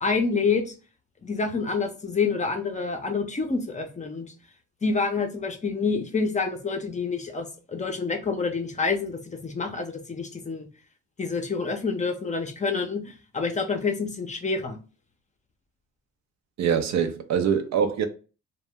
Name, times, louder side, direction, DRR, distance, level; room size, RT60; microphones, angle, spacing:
voice 1, 0.0-0.7 1.2-4.3 4.8-10.7 11.2-14.8, left 4 dB, 25° left, 0.5 m, -27 dB
voice 2, 16.6-18.1, right 7 dB, 60° right, 0.5 m, -24 dB
2.1 x 2.1 x 3.4 m
cardioid pair, 90°, 30 cm